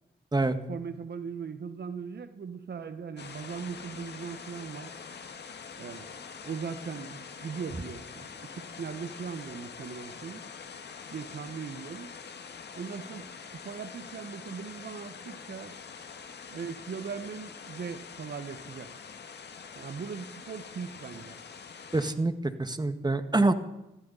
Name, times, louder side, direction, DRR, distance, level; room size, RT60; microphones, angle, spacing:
voice 1, 0.7-4.9 5.8-6.1 6.4-10.4 11.1-12.1 12.7-13.3 13.5-15.7 16.5-18.9 19.7-21.3, right 6 dB, 65° right, 11 dB, 1.5 m, -39 dB
sound 1, 3.2-22.1, left 6 dB, 65° left, 1.9 m, -45 dB
voice 2, 21.9-23.5, right 2 dB, 20° right, 9 dB, 1.8 m, -26 dB
21.0 x 14.5 x 4.2 m, 0.92 s
supercardioid pair, 40°, 19 cm